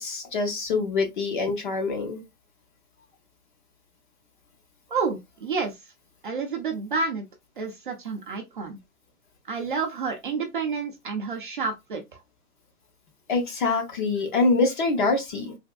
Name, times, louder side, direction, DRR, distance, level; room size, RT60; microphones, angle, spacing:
voice 1, 0.0-2.2 13.3-15.6, left 3 dB, 35° left, 0.6 m, -25 dB
voice 2, 4.9-5.8 6.2-7.2 7.6-8.8 9.5-12.0, right 4 dB, 35° right, 0.4 m, -29 dB
3.3 x 2.2 x 2.3 m
hypercardioid pair, 145°, 45 cm